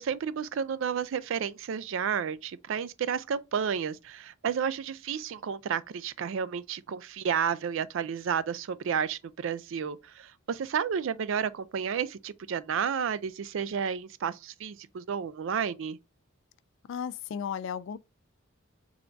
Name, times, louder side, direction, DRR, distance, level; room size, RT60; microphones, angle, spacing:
voice 1, 0.0-16.0, right 7 dB, 65° right, 0.4 m, -31 dB
voice 2, 16.9-18.0, left 7 dB, 65° left, 0.3 m, -34 dB
3.9 x 3.4 x 3.4 m
head